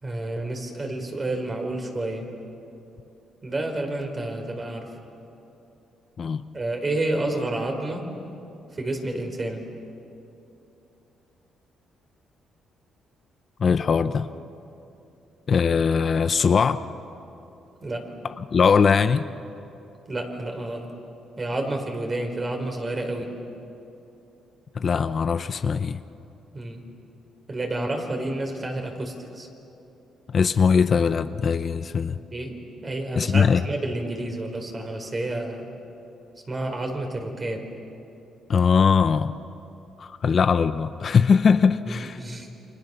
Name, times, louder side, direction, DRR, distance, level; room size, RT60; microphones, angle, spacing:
voice 1, 0.0-2.3 3.4-4.9 6.5-8.0 8.7-9.6 17.8-18.1 20.1-20.9 21.4-23.3 26.5-26.8 27.5-29.5 32.3-35.7 36.5-37.6 41.9-42.5, right 2 dB, 30° right, 3 dB, 4.7 m, -30 dB
voice 2, 13.6-14.3 15.5-16.8 18.4-19.3 24.7-26.0 30.3-32.2 33.2-33.6 38.5-39.3 40.0-42.2, left 6 dB, 45° left, 11 dB, 0.7 m, -21 dB
29.0 x 25.5 x 6.9 m, 2.8 s
cardioid pair, 90°, 0 cm